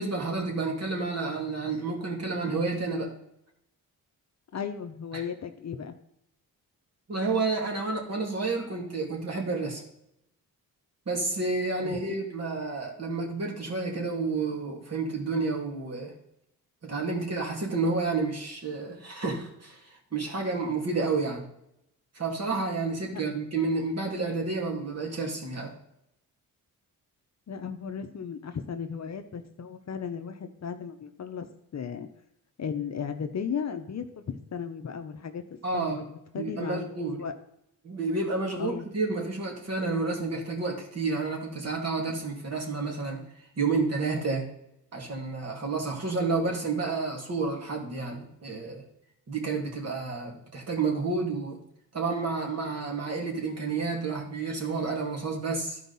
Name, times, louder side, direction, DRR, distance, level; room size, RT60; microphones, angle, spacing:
voice 1, 0.0-3.1 5.1-5.2 7.1-9.8 11.1-16.1 16.8-21.5 22.1-25.7 35.6-36.0 36.3-37.2 37.8-43.2 43.6-44.5 44.9-48.8 49.3-51.6 51.9-55.8, right 3 dB, 40° right, 0 dB, 2.6 m, -30 dB
voice 2, 4.5-5.9 11.8-12.0 23.1-23.2 27.5-31.5 31.7-32.1 32.6-37.3 38.6-38.9, left 7 dB, 45° left, 7 dB, 0.8 m, -35 dB
12.5 x 4.7 x 4.1 m, 0.78 s
cardioid pair, 75°, 37 cm